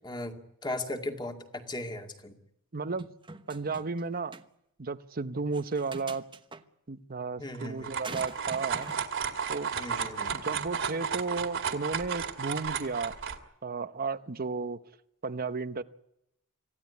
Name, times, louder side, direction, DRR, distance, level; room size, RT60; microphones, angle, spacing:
voice 1, 0.0-2.3 7.4-7.9 9.7-10.3, left 1 dB, 20° left, 2.3 m, -37 dB
voice 2, 2.7-3.1 3.5-4.4 4.8-6.2 6.9-8.9 9.5-9.7 10.3-13.1 13.6-14.8 15.2-15.8, right 4 dB, 45° right, 0.9 m, -33 dB
sound 1, 3.0-4.0 4.3-4.4 5.5-6.6 8.0-9.0, right 3 dB, 20° right, 1.1 m, -44 dB
sound 2, 7.5-13.4, right 7 dB, 60° right, 2.2 m, -33 dB
25.5 x 16.0 x 9.7 m
head